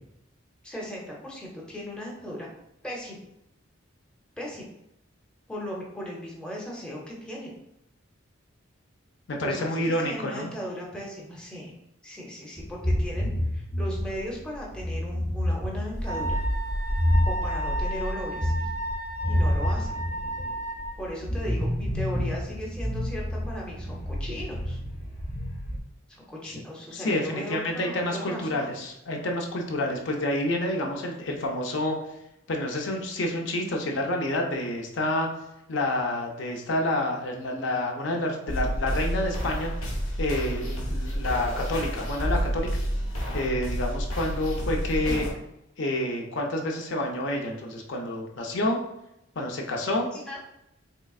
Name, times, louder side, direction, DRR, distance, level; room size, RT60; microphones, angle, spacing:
voice 1, 0.6-2.5 2.8-3.2 4.4-4.7 5.5-7.5 9.4-11.7 12.0-16.4 17.3-18.7 19.3-19.9 21.0-24.8 26.1-28.7 45.0-45.2 50.0-50.4, equal, 5° left, -4 dB, 0.6 m, -37 dB
voice 2, 9.3-10.5 26.4-26.5 26.9-32.0 32.5-35.3 35.7-39.7 40.2-42.7 43.3-45.3 45.8-48.8 49.4-50.1, left 1 dB, 65° left, 1 dB, 0.5 m, -28 dB
sound 1, 12.6-25.8, left 1 dB, 35° left, 0.9 m, -29 dB
Wind instrument woodwind instrument, 16.1-21.0, right 1 dB, 75° right, 0.5 m, -34 dB
sound 2, 38.5-45.3, equal, 85° left, 1.1 m, -29 dB
3.7 x 3.2 x 2.3 m, 0.83 s
head